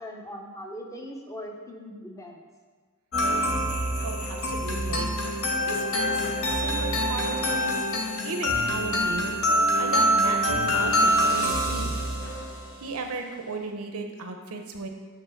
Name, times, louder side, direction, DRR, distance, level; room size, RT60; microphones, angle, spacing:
voice 1, 0.0-2.4, equal, 15° left, 2 dB, 0.7 m, -40 dB
sound 1, 3.1-12.8, equal, 70° left, 0.8 m, -25 dB
voice 2, 4.0-5.4 5.7-9.5 9.8-12.0 12.8-14.9, right 3 dB, 90° right, 5 dB, 0.8 m, -36 dB
5.9 x 3.9 x 5.9 m, 1.5 s
head